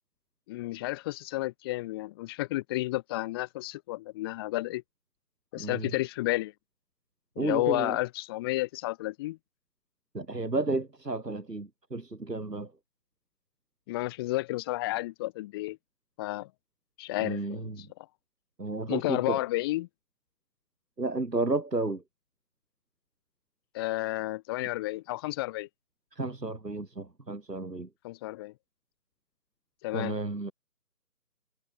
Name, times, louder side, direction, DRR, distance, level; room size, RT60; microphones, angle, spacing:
voice 1, 0.5-4.8 5.5-6.5 7.4-9.4 13.9-15.8 16.2-16.5 17.0-17.9 18.9-19.9 23.7-25.7 28.0-28.5 29.8-30.2, left 18 dB, 15° left, 2.7 m, -31 dB
voice 2, 5.6-5.9 7.4-8.0 10.1-12.7 17.2-17.9 18.6-19.4 21.0-22.0 26.1-27.9 29.9-30.5, right 2 dB, 85° right, 3.5 m, -32 dB
figure-of-eight pair, 155°, 47 cm